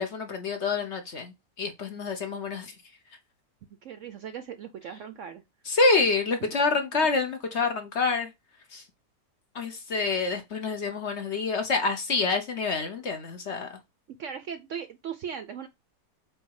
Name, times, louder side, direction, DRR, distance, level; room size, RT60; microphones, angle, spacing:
voice 1, 0.0-2.7 5.7-8.3 8.7-8.8 9.5-13.8, left 4 dB, 50° left, 1.0 m, -27 dB
voice 2, 3.8-5.4 6.4-6.6 14.2-15.7, right 7 dB, 65° right, 0.8 m, -38 dB
7.7 x 2.8 x 4.7 m
omnidirectional pair, 1.7 m